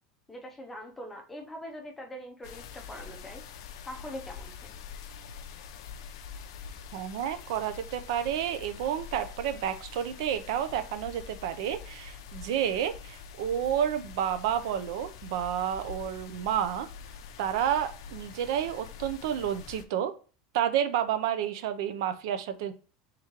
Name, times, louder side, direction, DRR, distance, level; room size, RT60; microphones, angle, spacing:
voice 1, 0.3-3.4 3.9-4.7, equal, 5° left, 2 dB, 0.5 m, -42 dB
sound 1, 2.4-19.8, left 7 dB, 80° left, 0.5 m, -45 dB
voice 2, 6.9-16.9 17.4-20.1 20.5-22.7, right 9 dB, 65° right, 9 dB, 0.5 m, -30 dB
3.6 x 2.9 x 4.5 m, 0.38 s
supercardioid pair, 175°, 3 cm